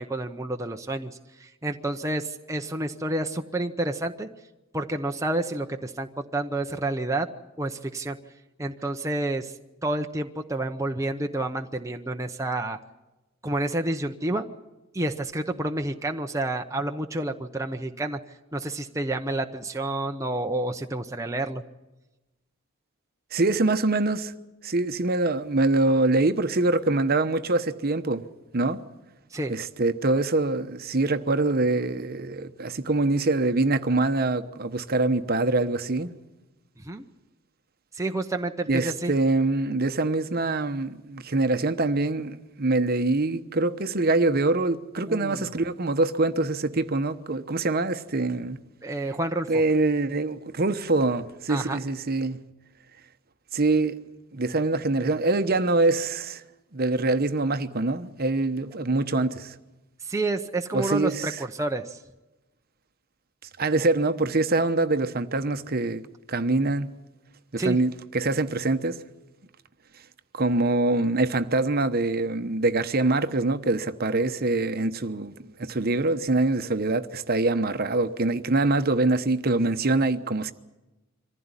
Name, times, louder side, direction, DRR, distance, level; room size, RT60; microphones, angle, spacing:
voice 1, 0.0-4.3 4.7-7.3 7.6-8.2 8.6-12.8 13.4-14.5 14.9-18.2 18.5-21.6 29.3-29.5 36.8-37.0 37.9-39.1 45.1-45.5 48.8-49.6 51.5-51.8 60.0-62.0 67.6-67.8, right 2 dB, 15° right, 0.8 m, -29 dB
voice 2, 23.3-24.3 24.6-28.2 28.5-28.8 29.5-36.1 38.7-48.6 49.5-52.4 53.5-53.9 54.3-56.4 56.7-59.6 60.7-61.4 63.6-66.0 66.3-66.9 67.5-69.0 70.3-80.5, right 2 dB, 45° right, 1.0 m, -24 dB
25.0 x 15.5 x 9.8 m
head